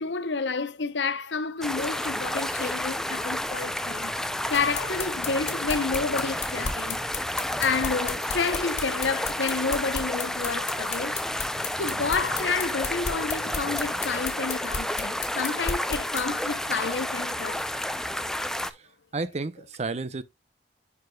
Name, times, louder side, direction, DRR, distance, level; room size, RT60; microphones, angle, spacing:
voice 1, 0.0-4.1 4.5-7.1 7.6-11.4 11.8-17.7, left 4 dB, 85° left, 0.8 m, -30 dB
sound 1, 1.6-18.7, left 1 dB, 5° left, 0.4 m, -31 dB
sound 2, 4.5-16.2, left 5 dB, 40° left, 1.7 m, -33 dB
voice 2, 19.1-20.2, right 3 dB, 40° right, 0.6 m, -32 dB
11.0 x 4.8 x 2.3 m
head